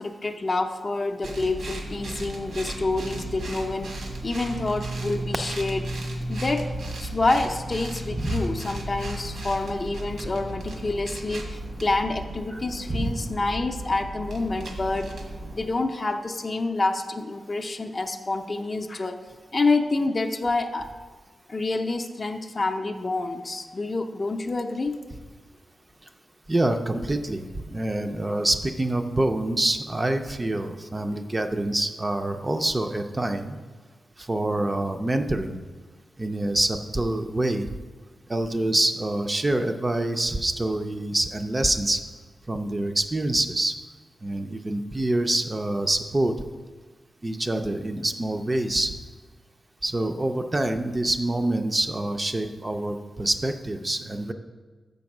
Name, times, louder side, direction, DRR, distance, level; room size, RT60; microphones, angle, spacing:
voice 1, 0.0-5.8 6.3-6.7 7.0-15.1 15.5-19.2 19.5-20.9 21.5-25.0, left 3 dB, 35° left, 6 dB, 0.5 m, -27 dB
sound 1, 1.2-15.7, right 1 dB, 80° right, 1.3 m, -35 dB
voice 2, 8.1-8.4 12.5-12.6 12.9-13.1 26.5-33.6 34.2-35.6 36.2-37.7 38.3-42.0 42.5-43.7 44.2-46.3 47.2-48.9 49.8-54.3, right 1 dB, 20° right, 6 dB, 0.4 m, -26 dB
6.9 x 5.3 x 5.9 m, 1.4 s
wide cardioid pair, 125°, 0 cm